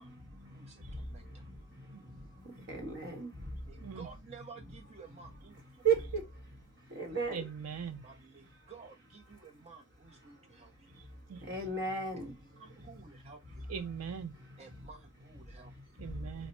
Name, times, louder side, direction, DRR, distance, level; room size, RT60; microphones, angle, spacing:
voice 1, 0.0-4.1 4.6-4.7 5.0-7.4 8.0-8.2 9.3-9.4 10.5-11.0 11.3-13.6 14.3-14.9 15.3-16.5, right 5 dB, 55° right, 1.3 m, -39 dB
voice 2, 0.5-1.2 3.7-5.6 8.0-10.7 12.6-13.7 14.6-15.7, right 5 dB, 30° right, 0.5 m, -53 dB
voice 3, 7.3-8.0 11.3-11.4 13.7-14.3 16.0-16.5, right 7 dB, 80° right, 0.4 m, -40 dB
4.1 x 2.2 x 3.0 m
head